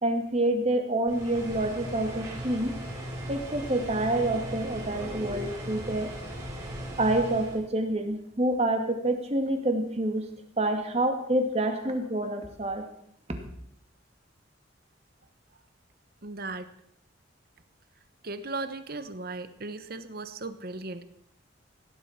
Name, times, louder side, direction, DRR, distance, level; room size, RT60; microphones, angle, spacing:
voice 1, 0.0-2.7 3.3-6.1 6.9-10.3 10.6-12.8, right 1 dB, 35° right, 5 dB, 2.3 m, -27 dB
sound 1, 1.1-7.6, equal, 20° right, 4.3 m, -38 dB
voice 2, 16.2-16.7 18.2-21.0, right 3 dB, 50° right, 12 dB, 1.2 m, -37 dB
17.0 x 11.0 x 6.0 m, 0.72 s
head